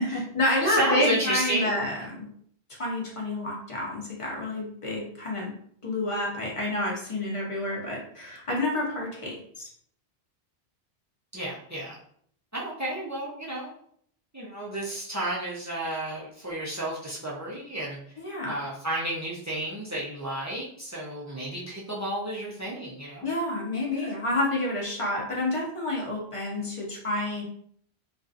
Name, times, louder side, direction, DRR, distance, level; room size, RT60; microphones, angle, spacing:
voice 1, 0.0-2.3 2.8-5.5 5.8-9.7 18.2-18.6 23.2-27.4, left 1 dB, 35° left, -2 dB, 0.7 m, -29 dB
voice 2, 0.5-1.8 11.3-12.0 12.5-13.7 14.3-18.0 18.5-23.3 24.0-24.1, right 1 dB, 20° right, -5 dB, 0.5 m, -31 dB
2.7 x 2.4 x 2.4 m, 0.62 s
omnidirectional pair, 1.1 m